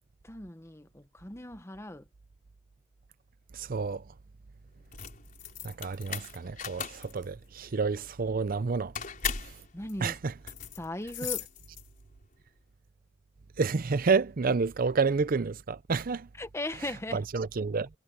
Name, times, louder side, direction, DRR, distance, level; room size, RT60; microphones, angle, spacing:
voice 1, 0.2-2.0 9.7-10.1 10.8-11.5 16.4-17.2, left 1 dB, 15° left, 1.1 m, -38 dB
voice 2, 3.5-4.0 5.6-8.9 9.4-9.5 10.0-10.3 13.6-16.3 16.8-17.9, right 4 dB, 45° right, 0.5 m, -29 dB
sound 1, 4.8-12.2, left 7 dB, 45° left, 4.5 m, -38 dB
head